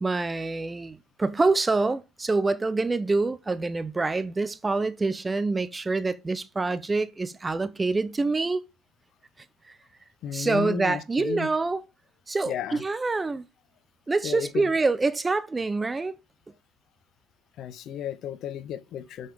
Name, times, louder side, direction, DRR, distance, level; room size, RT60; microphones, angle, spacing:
voice 1, 0.0-8.6 10.3-11.8 12.3-13.4 14.1-16.2, right 3 dB, 15° right, 0.7 m, -26 dB
voice 2, 10.2-11.5 12.5-12.8 14.2-14.7 17.6-19.3, left 9 dB, 55° left, 0.8 m, -34 dB
5.7 x 5.5 x 5.0 m
supercardioid pair, 100°, 0 cm